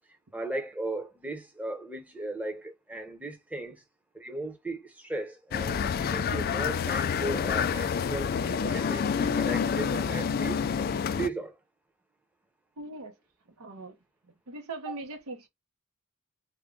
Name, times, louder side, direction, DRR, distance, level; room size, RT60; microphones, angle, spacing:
voice 1, 0.3-3.8 4.1-10.6 11.2-11.6 14.9-15.0, right 2 dB, 5° right, 0.7 m, -36 dB
sound 1, 5.5-11.3, left 6 dB, 45° left, 0.3 m, -28 dB
voice 2, 12.8-13.1 13.6-14.0 14.5-15.5, right 2 dB, 85° right, 0.8 m, -40 dB
3.6 x 2.1 x 3.6 m
head